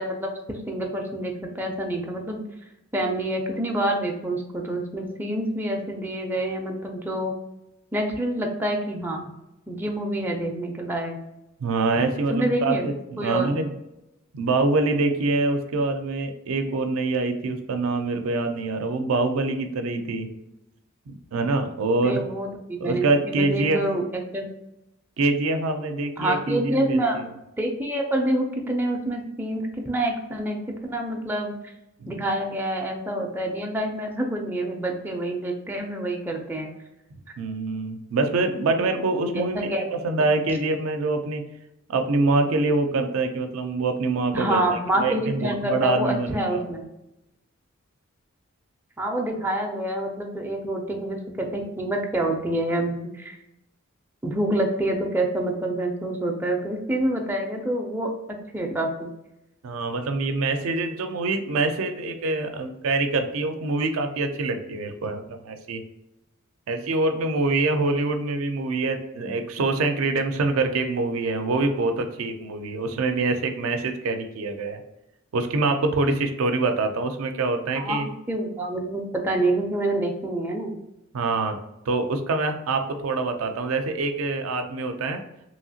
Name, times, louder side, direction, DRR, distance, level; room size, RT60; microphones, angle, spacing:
voice 1, 0.0-2.4 2.9-7.3 7.9-9.3 9.7-11.2 12.3-12.9 13.2-13.5 22.0-24.0 24.3-24.5 26.2-27.2 27.6-31.5 32.1-36.7 39.3-39.9 40.2-40.3 44.3-46.9 49.0-53.4 54.2-58.1 58.5-59.1 77.8-80.7, right 1 dB, 10° right, 1 dB, 0.4 m, -27 dB
voice 2, 11.6-13.7 14.3-20.3 21.1-22.2 22.8-23.8 25.2-27.3 32.0-32.2 37.4-39.7 40.0-41.4 41.9-46.7 59.6-65.8 66.7-74.8 75.3-78.1 81.1-81.6 81.9-85.2, right 3 dB, 80° right, 6 dB, 0.4 m, -25 dB
3.0 x 2.8 x 2.7 m, 0.90 s
head